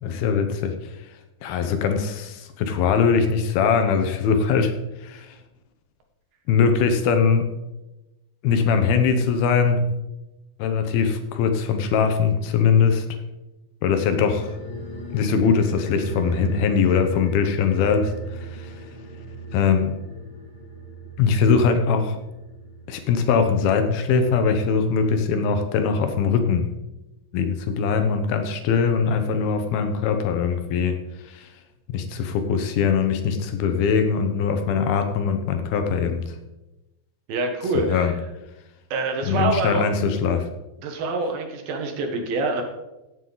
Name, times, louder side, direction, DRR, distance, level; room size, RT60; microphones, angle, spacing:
voice 1, 0.0-0.9 1.4-4.7 5.0-5.4 6.5-7.5 8.4-9.9 10.6-13.1 13.8-14.6 15.1-18.8 19.5-19.9 21.2-22.2 22.9-26.7 27.3-31.0 31.2-31.5 31.9-36.4 37.8-38.1 39.3-40.5, left 6 dB, 75° left, 7 dB, 2.7 m, -21 dB
sound 1, 13.9-24.7 25.0-25.1, right 2 dB, 35° left, 2.7 m, -37 dB
voice 2, 37.3-38.1 38.9-39.8 40.8-42.6, right 3 dB, 70° right, 4 dB, 2.9 m, -25 dB
16.0 x 7.8 x 3.9 m, 0.99 s
omnidirectional pair, 4.6 m